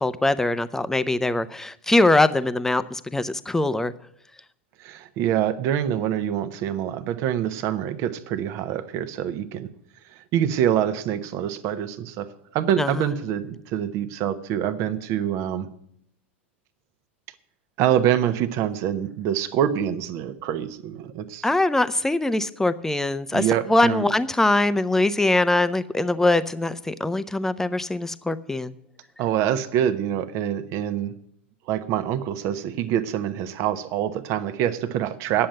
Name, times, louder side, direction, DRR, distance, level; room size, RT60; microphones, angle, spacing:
voice 1, 0.0-3.9 12.8-13.1 21.4-28.7, left 2 dB, 5° left, 14 dB, 0.7 m, -22 dB
voice 2, 4.8-9.7 10.1-12.3 12.5-15.7 17.8-21.5 23.3-24.1 29.2-31.1 31.7-35.5, right 10 dB, 45° right, 12 dB, 1.0 m, -25 dB
10.0 x 7.5 x 9.2 m, 0.72 s
hypercardioid pair, 90°, 7 cm